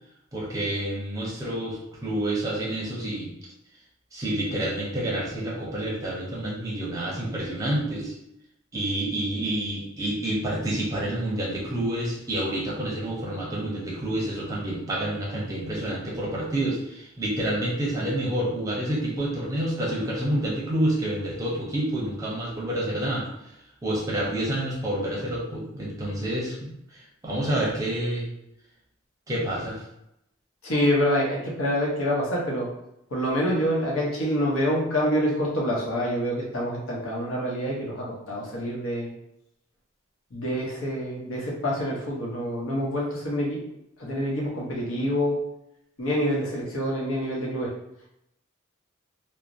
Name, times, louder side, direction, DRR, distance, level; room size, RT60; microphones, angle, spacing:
voice 1, 0.3-3.3 4.1-8.1 8.7-23.3 23.8-28.3 29.3-29.8, right 1 dB, 15° right, -5 dB, 0.6 m, -28 dB
voice 2, 30.6-32.7 33.1-39.1 40.3-43.6 44.0-45.4 46.0-47.7, equal, 90° left, -3 dB, 0.8 m, -26 dB
2.9 x 2.0 x 2.5 m, 0.82 s
head